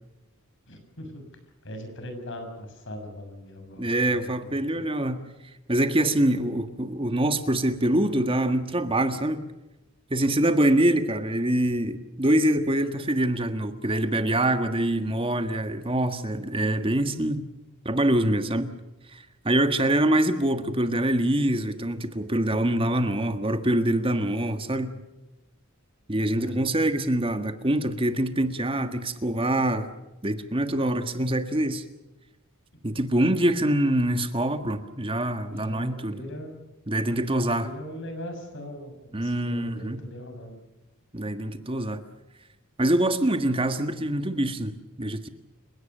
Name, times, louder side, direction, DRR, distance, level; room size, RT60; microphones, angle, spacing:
voice 1, 0.7-1.3 1.6-4.9 19.6-20.0 26.3-26.7 35.5-36.5 37.1-40.6, equal, 55° left, 6 dB, 6.6 m, -40 dB
voice 2, 3.8-5.2 5.7-9.4 10.1-17.4 17.8-18.7 19.1-25.0 26.1-29.9 30.2-31.8 32.8-36.2 36.9-37.7 39.1-40.0 41.1-42.0 42.8-45.3, right 1 dB, 25° right, 8 dB, 1.6 m, -25 dB
30.0 x 17.5 x 6.8 m, 1.0 s
head